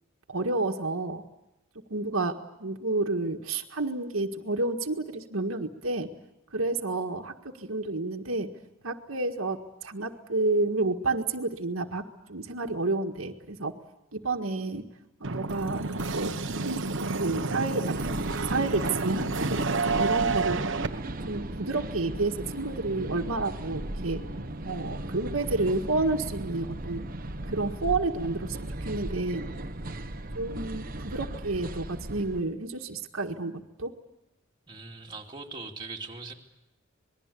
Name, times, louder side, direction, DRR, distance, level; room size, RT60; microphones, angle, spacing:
voice 1, 0.3-1.2 1.9-6.1 6.5-8.5 8.8-12.0 12.3-13.7 14.1-14.8 15.2-16.3 16.6-18.2 18.5-20.6 21.3-24.2 24.6-27.0 27.5-29.4 30.3-33.9, right 2 dB, 90° right, 3 dB, 1.8 m, -30 dB
sound 1, 15.2-20.9, right 3 dB, 65° right, 1.3 m, -30 dB
sound 2, 17.8-32.4, right 1 dB, 45° right, 1.3 m, -36 dB
voice 2, 34.7-36.3, right 3 dB, 20° right, 0 dB, 2.7 m, -40 dB
27.0 x 20.5 x 8.5 m, 0.89 s
head